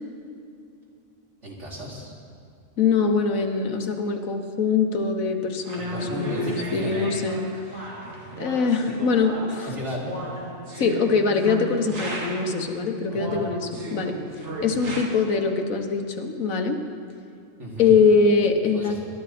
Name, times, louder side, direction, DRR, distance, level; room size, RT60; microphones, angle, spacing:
voice 1, 1.4-2.1 5.7-7.0 9.6-10.1 13.1-13.4 14.6-14.8 17.6-18.0 18.7-19.0, left 1 dB, 60° right, -5 dB, 3.5 m, -34 dB
voice 2, 2.8-7.5 8.4-9.7 10.8-14.2 14.6-16.8 17.8-19.0, left 5 dB, 85° left, 5 dB, 1.5 m, -23 dB
sound 1, 5.6-12.6 13.1-15.1, right 2 dB, 80° right, 2.3 m, -35 dB
20.5 x 12.5 x 4.2 m, 2.7 s
omnidirectional pair, 1.4 m